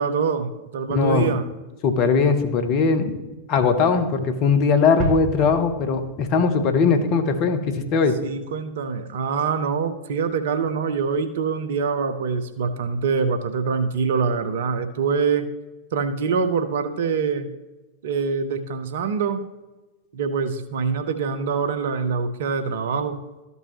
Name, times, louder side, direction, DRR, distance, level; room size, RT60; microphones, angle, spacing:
voice 1, 0.0-1.4 8.2-15.5 15.9-17.5 18.0-19.4 20.1-23.2, right 5 dB, 60° right, 9 dB, 0.7 m, -24 dB
voice 2, 0.9-1.4 1.8-3.2 3.5-8.2, left 5 dB, 40° left, 8 dB, 0.9 m, -20 dB
sound 1, 5.0-7.7, right 4 dB, 40° right, 1.2 m, -32 dB
13.0 x 5.4 x 3.0 m, 1.1 s
figure-of-eight pair, 90°, 0 cm